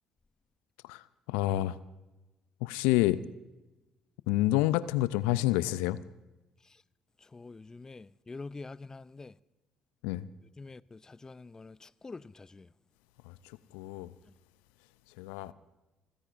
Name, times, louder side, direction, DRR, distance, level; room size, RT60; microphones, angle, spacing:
voice 1, 0.8-1.8 2.6-3.2 4.3-6.0 10.0-10.3 13.2-14.1 15.2-15.5, left 16 dB, 75° left, 0.5 m, -29 dB
voice 2, 7.2-9.4 10.6-12.7, left 3 dB, 25° left, 0.5 m, -46 dB
26.5 x 15.5 x 2.6 m
hypercardioid pair, 50°, 2 cm